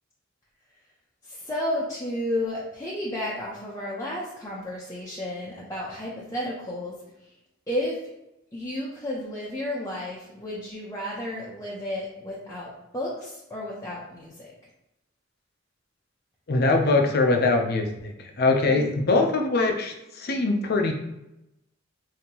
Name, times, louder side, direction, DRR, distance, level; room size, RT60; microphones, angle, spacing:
voice 1, 1.2-7.0 7.7-8.1 8.5-14.5, left 1 dB, 15° left, -6 dB, 0.7 m, -32 dB
voice 2, 16.5-20.9, left 3 dB, 55° left, 4 dB, 0.6 m, -22 dB
5.3 x 2.8 x 2.9 m, 0.89 s
head